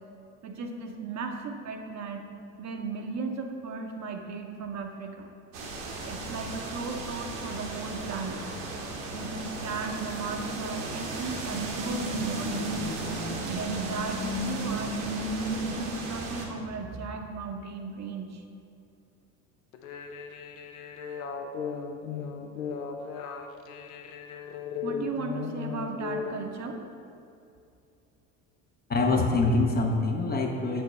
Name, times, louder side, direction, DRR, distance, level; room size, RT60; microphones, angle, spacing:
voice 1, 0.4-2.3 2.6-5.3 6.1-8.4 9.1-12.7 13.5-18.4 24.8-26.8, right 4 dB, 40° right, 3 dB, 0.7 m, -36 dB
sound 1, 5.5-16.5, right 1 dB, 65° right, 1.1 m, -34 dB
sound 2, 19.7-26.4, left 6 dB, 90° left, 0.5 m, -36 dB
voice 2, 28.9-30.8, left 3 dB, 25° left, 2 dB, 0.5 m, -25 dB
6.8 x 4.4 x 3.2 m, 2.6 s
hypercardioid pair, 70°, 41 cm